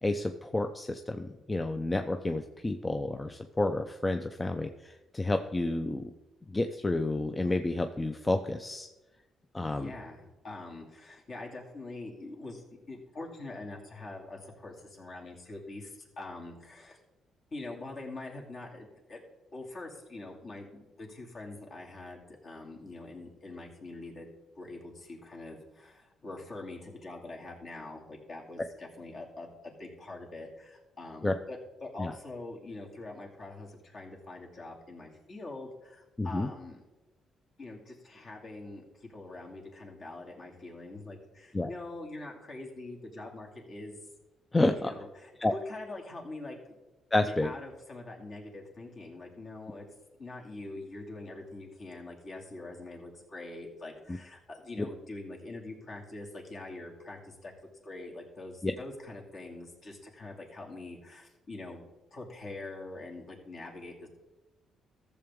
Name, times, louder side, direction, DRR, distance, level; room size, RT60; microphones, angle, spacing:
voice 1, 0.0-6.1 6.5-8.9 9.5-9.9 31.2-31.3 32.0-32.1 36.2-36.5 41.5-41.7 44.5-44.9 45.4-45.5 47.1-47.5 58.6-58.7, left 2 dB, 20° left, 6 dB, 0.6 m, -30 dB
voice 2, 9.6-17.0 17.5-19.2 19.5-24.3 24.6-36.8 37.6-44.0 44.8-46.8 47.3-49.8 50.2-57.5 57.8-64.1, left 2 dB, 50° left, 0 dB, 2.4 m, -44 dB
14.0 x 7.0 x 3.6 m, 1.1 s
cardioid pair, 90°, 0 cm